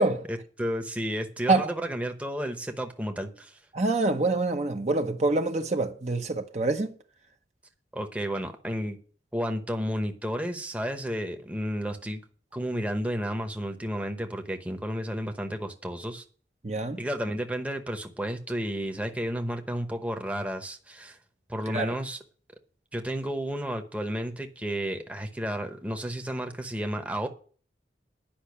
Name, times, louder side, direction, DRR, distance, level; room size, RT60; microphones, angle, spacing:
voice 1, 0.3-3.6 7.9-9.0 9.3-12.2 12.5-16.2 17.0-21.2 21.5-22.2 22.9-27.3, equal, 10° right, 0.9 m, -32 dB
voice 2, 3.7-6.9 16.6-17.0 21.7-22.0, right 2 dB, 40° right, 0.8 m, -26 dB
10.5 x 5.6 x 8.1 m
head